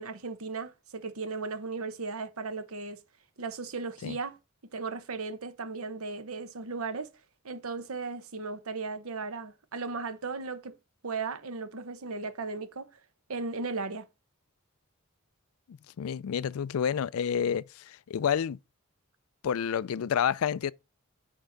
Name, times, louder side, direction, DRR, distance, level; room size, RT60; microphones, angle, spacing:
voice 1, 0.0-3.0 3.4-4.4 4.7-7.1 7.4-10.8 11.0-12.9 13.3-14.1, right 4 dB, 85° right, 0.9 m, -36 dB
voice 2, 15.7-18.6 19.4-20.7, left 8 dB, 80° left, 0.4 m, -29 dB
9.9 x 4.7 x 3.9 m
head